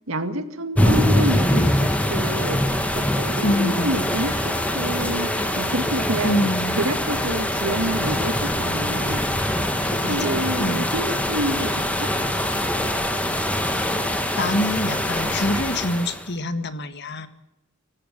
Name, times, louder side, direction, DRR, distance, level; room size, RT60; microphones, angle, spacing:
voice 1, 0.1-6.5 6.7-9.3 9.8-12.1, right 1 dB, 85° right, 10 dB, 2.0 m, -28 dB
sound 1, 0.8-16.3, left 1 dB, 5° left, 2.2 m, -23 dB
voice 2, 3.4-4.0 6.2-6.8 10.0-10.9 13.6-13.9 14.4-17.3, left 1 dB, 55° left, 10 dB, 1.8 m, -26 dB
25.5 x 15.5 x 7.5 m, 0.89 s
head